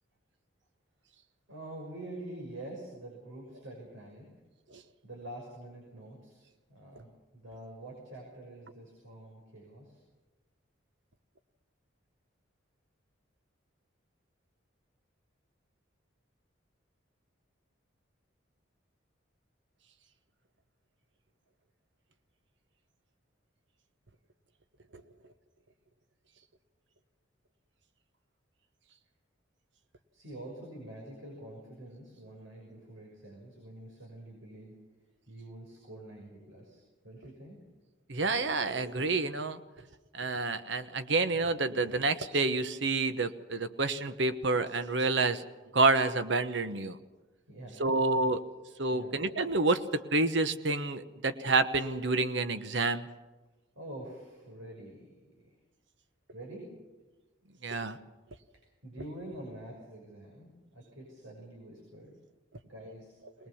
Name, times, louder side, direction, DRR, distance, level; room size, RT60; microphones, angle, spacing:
voice 1, 1.5-4.3 5.0-10.0 30.1-34.7 35.3-37.6 47.5-47.9 48.1-48.2 48.9-49.2 53.8-55.5 56.3-56.7 58.8-62.1 62.6-63.2, right 1 dB, 90° right, -1 dB, 6.0 m, -46 dB
voice 2, 38.1-39.6 40.1-45.4 45.7-47.0 47.8-48.4 48.8-53.0 57.6-58.0, right 3 dB, 65° right, 10 dB, 1.1 m, -28 dB
21.0 x 20.0 x 7.1 m, 1.2 s
head